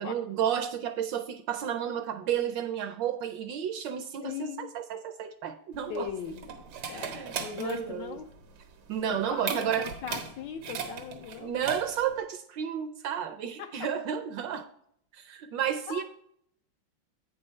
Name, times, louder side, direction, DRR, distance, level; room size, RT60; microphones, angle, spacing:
voice 1, 0.0-6.1 6.9-7.3 7.6-8.2 8.9-9.9 11.4-14.7 15.2-16.0, right 9 dB, 75° right, 1.1 m, -32 dB
voice 2, 4.2-4.7 5.9-6.5 6.9-8.3 9.1-11.6 13.6-13.9 15.9-16.0, left 8 dB, 75° left, 1.1 m, -39 dB
sound 1, 5.7-12.2, right 6 dB, 90° right, 1.9 m, -38 dB
8.6 x 5.4 x 4.4 m
omnidirectional pair, 2.3 m